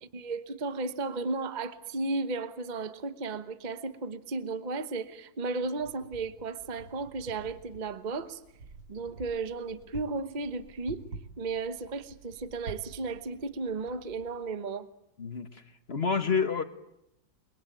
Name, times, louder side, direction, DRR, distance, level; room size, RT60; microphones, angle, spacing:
voice 1, 0.0-8.4 8.9-11.0 11.4-14.9, right 3 dB, 30° right, 1.1 m, -34 dB
Wind, 5.6-14.5, right 3 dB, 80° right, 2.8 m, -48 dB
voice 2, 15.2-15.6 15.9-16.6, left 5 dB, 35° left, 1.5 m, -28 dB
29.0 x 22.0 x 9.1 m
omnidirectional pair, 2.0 m